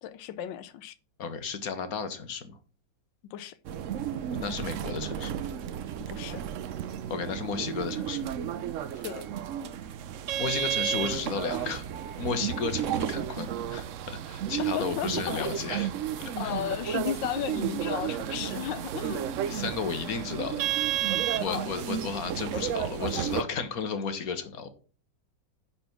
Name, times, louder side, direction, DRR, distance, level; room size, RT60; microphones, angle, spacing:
voice 1, 0.0-1.0 3.2-3.6 6.0-6.4 8.9-9.3 14.6-15.6 16.4-19.2 21.5-21.7, left 11 dB, 80° left, 1.4 m, -34 dB
voice 2, 1.2-2.4 4.3-5.5 7.1-8.4 10.4-11.9 12.2-15.9 16.2-16.5 19.5-20.6 21.4-24.7, left 5 dB, 55° left, 1.5 m, -33 dB
sound 1, 3.6-23.4, right 10 dB, 85° right, 0.6 m, -32 dB
10.0 x 4.2 x 6.0 m
omnidirectional pair, 2.0 m